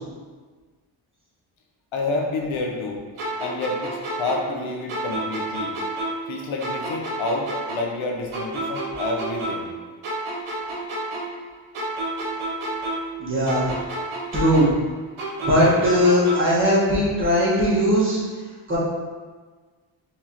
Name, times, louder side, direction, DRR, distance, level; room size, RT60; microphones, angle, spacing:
voice 1, 1.9-3.1 3.4-5.8 6.3-9.7, left 2 dB, 70° left, 1 dB, 0.8 m, -28 dB
sound 1, 3.2-6.3 6.6-9.8 10.0-13.2 13.5-16.6, right 2 dB, 80° right, 1.1 m, -30 dB
voice 2, 13.2-13.7 14.3-14.7 15.4-18.3 18.7-18.8, equal, 25° right, -8 dB, 1.5 m, -19 dB
4.6 x 3.6 x 2.9 m, 1.4 s
wide cardioid pair, 140°, 49 cm